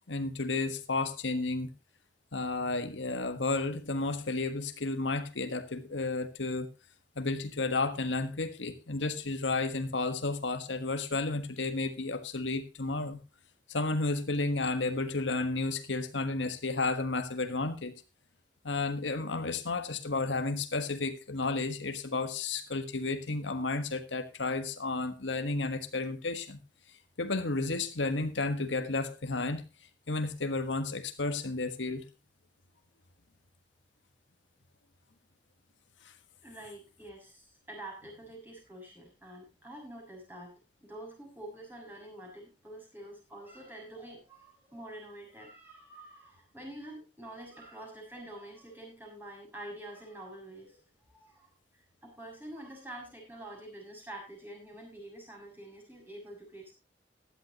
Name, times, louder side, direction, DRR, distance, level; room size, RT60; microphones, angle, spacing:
voice 1, 0.1-1.7 2.3-6.7 7.1-13.2 13.7-17.9 18.6-26.6 27.2-29.6 30.1-32.1, left 3 dB, 85° left, 8 dB, 1.5 m, -32 dB
voice 2, 36.4-50.8 51.1-56.7, right 1 dB, 10° right, -1 dB, 6.8 m, -47 dB
16.0 x 11.5 x 3.0 m, 0.26 s
head